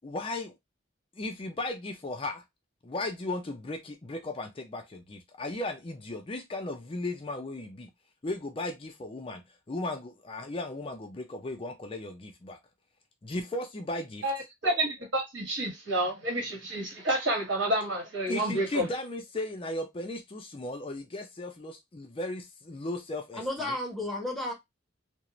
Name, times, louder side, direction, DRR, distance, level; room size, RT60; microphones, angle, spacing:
voice 1, 0.0-0.5 1.2-2.4 2.8-7.9 8.2-12.6 13.2-14.2 18.3-23.7, left 2 dB, 30° left, 0.4 m, -36 dB
voice 2, 14.6-18.9, right 1 dB, 70° right, 1.3 m, -29 dB
voice 3, 23.4-24.5, left 1 dB, ahead, 0.8 m, -32 dB
2.4 x 2.1 x 2.9 m
head